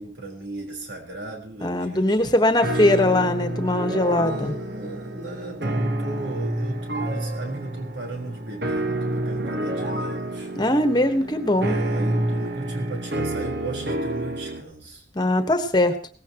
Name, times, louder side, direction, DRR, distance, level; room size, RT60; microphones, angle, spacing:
voice 1, 0.0-3.1 4.0-10.5 11.6-15.0, right 2 dB, 80° right, 1 dB, 4.2 m, -36 dB
voice 2, 1.6-4.5 10.5-11.7 15.1-15.9, left 1 dB, 25° left, 8 dB, 1.3 m, -21 dB
sound 1, 2.6-14.6, right 1 dB, 65° right, 1.3 m, -28 dB
18.0 x 15.0 x 3.0 m, 0.44 s
head